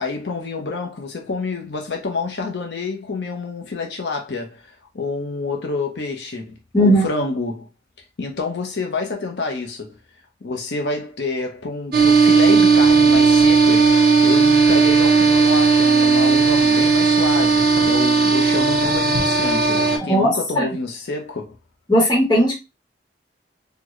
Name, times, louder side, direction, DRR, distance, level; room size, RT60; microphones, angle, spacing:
voice 1, 0.0-4.6 4.9-7.7 8.2-10.0 10.4-21.5, left 3 dB, 70° left, 0.7 m, -28 dB
voice 2, 6.7-7.0 20.1-20.7 21.9-22.5, equal, 25° left, 1.1 m, -16 dB
sound 1, 11.9-20.0, right 4 dB, 60° right, 0.9 m, -15 dB
3.8 x 2.2 x 3.0 m
head